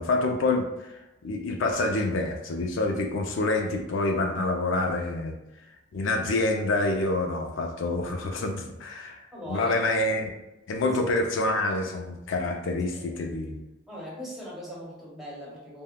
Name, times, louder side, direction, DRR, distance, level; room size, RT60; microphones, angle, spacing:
voice 1, 0.0-5.4 5.9-9.2 9.5-10.3 10.7-13.6, left 2 dB, 80° left, 3 dB, 0.4 m, -27 dB
voice 2, 9.3-9.8 10.8-10.9 12.9-13.2 13.9-15.8, left 1 dB, ahead, -7 dB, 1.0 m, -40 dB
3.4 x 2.2 x 2.2 m, 0.95 s
head